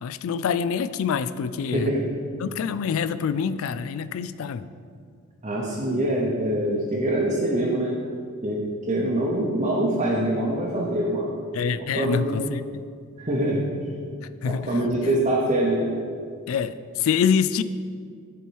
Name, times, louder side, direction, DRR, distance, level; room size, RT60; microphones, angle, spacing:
voice 1, 0.0-1.9 2.4-4.7 11.5-12.8 14.4-14.7 16.5-17.6, left 7 dB, 65° left, 14 dB, 0.3 m, -26 dB
voice 2, 1.7-2.1 5.4-8.0 8.4-8.6 8.9-11.4 11.7-12.4 13.2-13.6 13.9-14.0 14.4-15.9, right 1 dB, 30° right, -4 dB, 0.8 m, -24 dB
9.9 x 4.5 x 4.6 m, 2.2 s
head